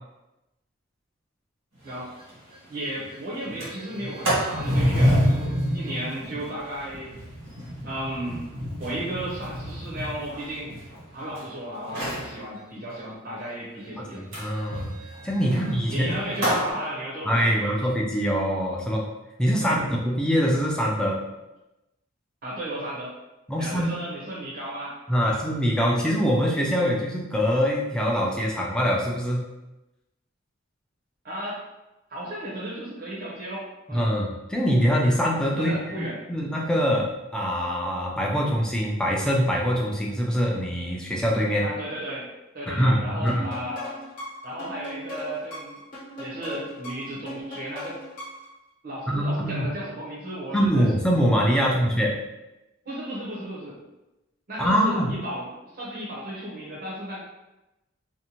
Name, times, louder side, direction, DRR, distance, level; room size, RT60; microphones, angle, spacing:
voice 1, 1.8-2.2 2.7-7.1 7.8-8.4 8.8-10.7 11.1-14.2 15.4-17.9 19.6-19.9 22.4-23.1 23.6-25.4 31.2-31.6 32.1-34.1 35.6-36.2 41.6-42.3 42.5-44.0 44.4-45.8 46.2-48.0 48.8-50.9 51.6-51.7 52.8-53.8 54.5-55.5 55.7-57.2, right 1 dB, 45° right, -7 dB, 0.6 m, -34 dB
Sliding door, 1.9-2.0 2.3-2.4 2.7-3.0 3.4-11.4 11.8-12.3 14.3-16.7, equal, 90° right, 1.3 m, -28 dB
voice 2, 14.1-14.9 15.2-16.1 17.2-19.0 19.4-21.2 23.5-24.0 25.1-29.5 33.9-41.6 42.7-43.5 49.1-49.7 50.5-52.1 54.6-55.2, equal, 5° left, -3 dB, 0.3 m, -24 dB
sound 1, 43.3-48.5, left 1 dB, 40° left, 0.8 m, -39 dB
2.6 x 2.1 x 2.9 m, 0.98 s
head